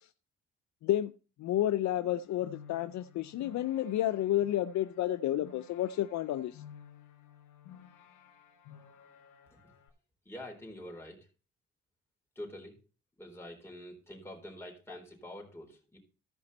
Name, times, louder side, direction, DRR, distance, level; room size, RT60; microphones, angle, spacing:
voice 1, 1.4-6.6, left 12 dB, 65° left, 0.5 m, -31 dB
sound 1, 1.9-9.9, left 9 dB, 90° left, 2.1 m, -55 dB
voice 2, 10.3-11.3 12.4-12.8 13.2-16.0, left 1 dB, 10° left, 3.9 m, -46 dB
14.5 x 5.3 x 4.1 m
cardioid pair, 90°, 30 cm